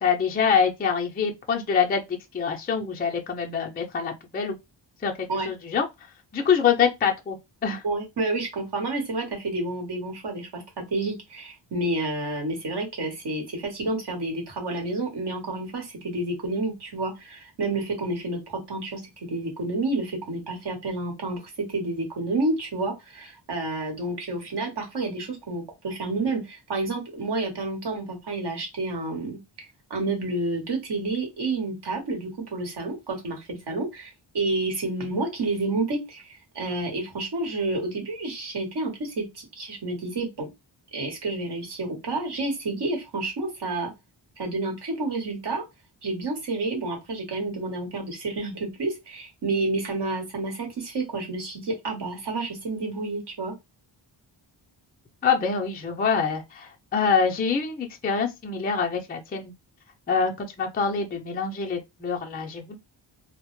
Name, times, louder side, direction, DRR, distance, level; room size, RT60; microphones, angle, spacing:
voice 1, 0.0-2.0 2.3-4.5 5.0-5.1 5.5-5.9 6.3-7.4 7.6-7.8 55.2-59.5 60.1-62.7, left 6 dB, 20° left, 0.4 m, -25 dB
voice 2, 7.8-40.5 40.9-43.9 44.4-45.6 46.0-53.5, right 2 dB, 60° right, 1.0 m, -30 dB
2.1 x 2.0 x 2.9 m
wide cardioid pair, 85°, 47 cm